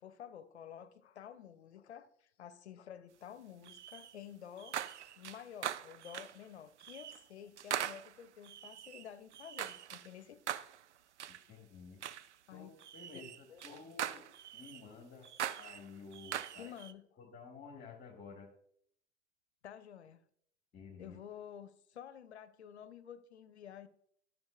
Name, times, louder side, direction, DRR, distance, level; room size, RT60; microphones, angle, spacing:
voice 1, 0.0-4.8 5.2-10.4 12.5-12.7 13.1-13.8 16.6-17.0 19.6-20.2 21.0-23.9, left 9 dB, 65° left, 0.7 m, -51 dB
sound 1, 3.7-4.2 4.6-6.4 6.8-7.2 7.6-10.1 10.5-10.8 11.2-11.4 12.0-12.3 12.8-14.8 15.2-16.9, right 10 dB, 70° right, 0.5 m, -42 dB
voice 2, 11.3-12.0 12.5-14.3 14.5-15.3 15.6-16.7 17.2-18.5 20.7-21.2, left 5 dB, 25° left, 1.6 m, -52 dB
13.0 x 6.4 x 2.3 m
figure-of-eight pair, 90°, 35 cm